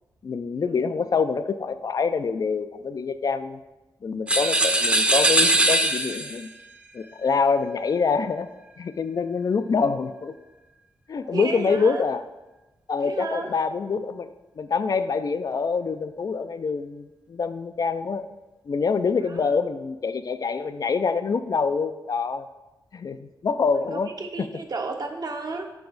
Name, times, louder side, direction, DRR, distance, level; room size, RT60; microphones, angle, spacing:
voice 1, 0.2-3.6 4.0-6.5 6.9-8.5 8.8-10.3 11.1-12.2 12.9-18.3 18.7-22.5 22.9-24.1 24.4-24.5, left 5 dB, 50° left, 11 dB, 0.3 m, -26 dB
sound 1, 4.3-6.4, right 1 dB, 15° right, 0.6 m, -21 dB
voice 2, 11.2-12.0 13.0-13.5 19.4-19.5 23.9-25.7, right 3 dB, 50° right, 4 dB, 0.8 m, -32 dB
6.1 x 4.8 x 3.9 m, 1.1 s
cardioid pair, 65°, 8 cm